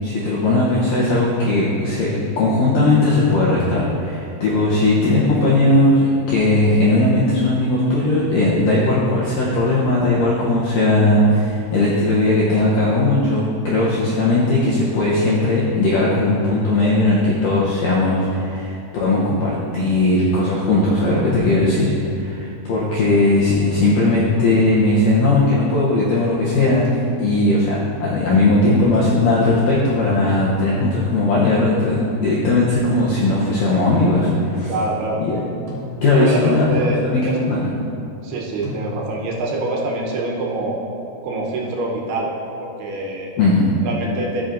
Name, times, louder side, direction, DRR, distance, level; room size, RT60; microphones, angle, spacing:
voice 1, 0.0-34.7 35.2-35.4 36.0-36.7 37.1-37.7 43.4-43.7, left 2 dB, 80° left, -6 dB, 1.9 m, -18 dB
sound 1, 23.7-24.5 26.8-27.6 29.9-30.6 32.7-33.5 35.7-36.4 38.6-39.4, left 1 dB, 50° right, 2.5 m, -35 dB
voice 2, 34.7-35.2 36.1-37.4 38.2-40.8 41.2-43.3 43.8-44.4, right 2 dB, 75° right, -2 dB, 2.8 m, -25 dB
14.0 x 5.9 x 2.5 m, 2.6 s
omnidirectional pair, 4.9 m